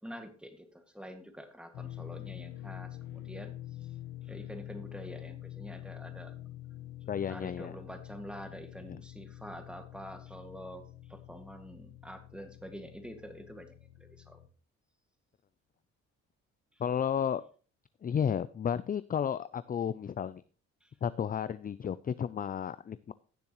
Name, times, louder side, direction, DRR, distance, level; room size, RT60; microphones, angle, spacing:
voice 1, 0.0-3.5 4.2-6.3 7.2-14.4 16.7-16.8 20.8-20.9, equal, 5° right, 6 dB, 2.0 m, -47 dB
sound 1, 1.7-14.5, left 13 dB, 85° left, 1.3 m, -46 dB
voice 2, 7.1-7.7 8.8-9.0 16.8-17.4 18.0-20.4 21.0-23.1, left 8 dB, 30° left, 15 dB, 0.4 m, -32 dB
16.5 x 6.9 x 3.0 m, 0.38 s
cardioid pair, 90°, 30 cm